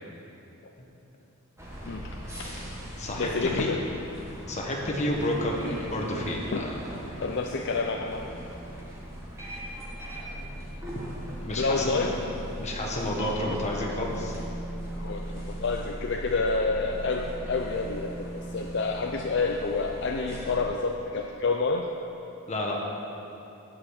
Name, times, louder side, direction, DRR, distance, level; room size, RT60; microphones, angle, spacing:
sound 1, 1.6-20.6, right 1 dB, 15° right, 1.7 m, -39 dB
voice 1, 1.8-2.5 3.2-3.8 5.6-5.9 6.5-6.7 7.2-8.3 11.5-12.2 15.0-21.9, left 3 dB, 55° left, 2 dB, 0.5 m, -29 dB
voice 2, 3.0-3.8 4.5-5.6 5.9-7.0 10.1-10.5 11.4-12.1 12.6-14.4 22.5-22.8, left 1 dB, 30° left, -2 dB, 1.4 m, -30 dB
8.8 x 6.8 x 8.2 m, 3.0 s
head